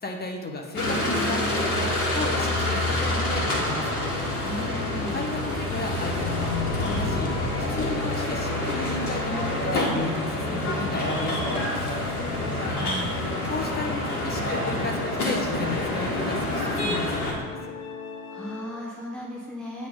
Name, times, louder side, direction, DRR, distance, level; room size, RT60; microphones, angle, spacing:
voice 1, 0.0-1.9 2.1-4.0 5.1-7.3 7.7-11.9 13.5-17.7, left 3 dB, 20° left, 1 dB, 1.3 m, -33 dB
sound 1, 0.8-17.3, left 1 dB, 85° left, 1.4 m, -27 dB
sound 2, 1.2-18.9, left 5 dB, 60° left, 0.9 m, -40 dB
voice 2, 4.4-5.3 12.3-13.1 18.3-19.9, equal, ahead, -5 dB, 1.3 m, -37 dB
8.2 x 3.7 x 3.9 m, 1.4 s
figure-of-eight pair, 60°, 44 cm